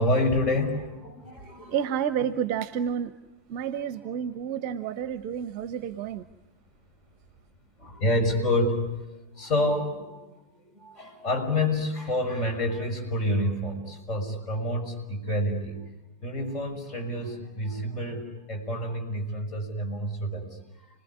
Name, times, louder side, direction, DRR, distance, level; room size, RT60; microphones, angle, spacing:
voice 1, 0.0-1.8 2.2-2.3 7.8-9.0 9.4-10.2 10.7-15.8 16.2-20.6, left 1 dB, 30° left, 6 dB, 6.4 m, -28 dB
voice 2, 1.7-3.1 3.5-6.2, right 8 dB, 40° right, 12 dB, 0.9 m, -30 dB
30.0 x 20.0 x 9.8 m, 1.1 s
figure-of-eight pair, 90°, 0 cm